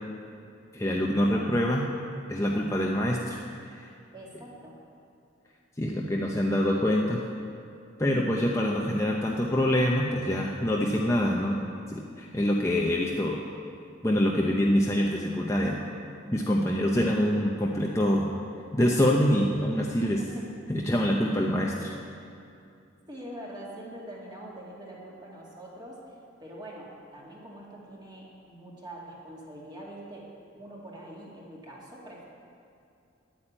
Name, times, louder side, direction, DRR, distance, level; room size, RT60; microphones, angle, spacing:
voice 1, 0.7-1.9 2.3-3.9 5.8-7.2 8.0-11.6 11.9-13.4 14.0-15.9 16.3-18.3 18.7-20.2 20.7-21.9, equal, 15° left, -2 dB, 0.7 m, -25 dB
voice 2, 4.1-4.8 20.2-20.4 23.1-26.1 26.4-30.2 30.5-32.2, right 1 dB, 20° right, -4 dB, 2.3 m, -44 dB
10.5 x 8.5 x 8.8 m, 2.5 s
head